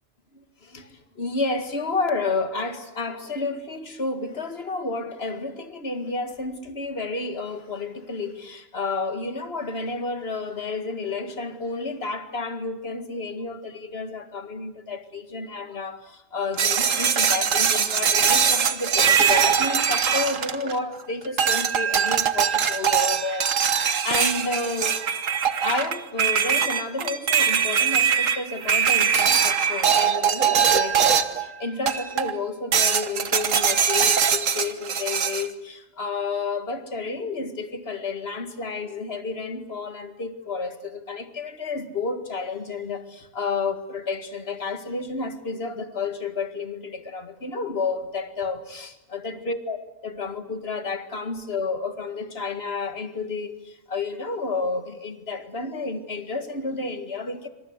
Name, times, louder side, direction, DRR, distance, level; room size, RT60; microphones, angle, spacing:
voice 1, 0.3-25.0 25.6-49.8 50.0-57.5, left 3 dB, 50° left, 8 dB, 2.2 m, -31 dB
sound 1, 16.6-21.0 21.4-31.5 31.9-32.4 32.7-35.5, right 7 dB, 90° right, 1.6 m, -22 dB
26.0 x 26.0 x 8.1 m, 0.90 s
omnidirectional pair, 1.3 m